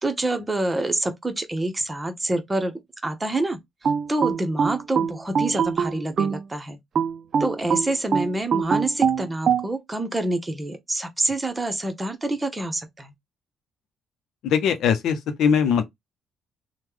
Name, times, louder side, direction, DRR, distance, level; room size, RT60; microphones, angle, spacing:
voice 1, 0.0-2.7 3.0-3.6 4.1-6.8 7.4-13.1, right 2 dB, 20° right, 0.9 m, -27 dB
sound 1, 3.8-6.4 7.0-9.7, right 6 dB, 55° right, 0.4 m, -23 dB
voice 2, 14.4-15.8, left 7 dB, 75° left, 0.6 m, -21 dB
3.1 x 2.2 x 3.5 m
supercardioid pair, 70°, 0 cm